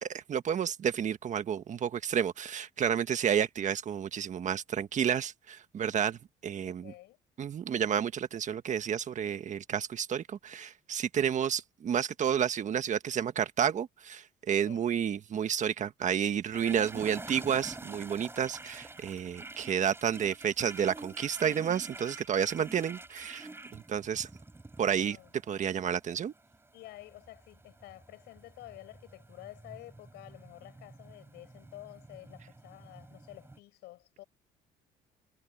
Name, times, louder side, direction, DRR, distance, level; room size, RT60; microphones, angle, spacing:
voice 1, 0.0-6.9 7.4-24.3 24.8-25.2 25.5-26.3, right 8 dB, 45° right, 1.5 m, -31 dB
voice 2, 6.6-7.2 14.5-14.9 24.9-25.3 26.7-34.2, left 17 dB, 85° left, 6.4 m, -50 dB
sound 1, 16.5-33.6, right 2 dB, 15° right, 4.8 m, -47 dB
cardioid pair, 110°, 17 cm